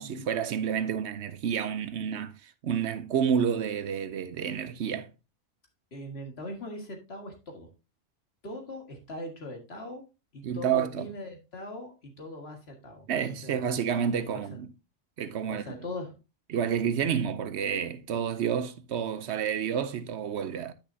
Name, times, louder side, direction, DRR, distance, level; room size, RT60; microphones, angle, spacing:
voice 1, 0.0-5.1 10.4-11.1 13.1-14.7 15.2-15.8 16.5-20.7, right 8 dB, 70° right, 0.9 m, -29 dB
voice 2, 5.9-7.7 8.4-10.0 10.3-13.1 13.4-13.6 14.3-14.5 15.5-16.2, left 1 dB, 55° left, 2.1 m, -40 dB
10.0 x 6.1 x 2.7 m
omnidirectional pair, 1.3 m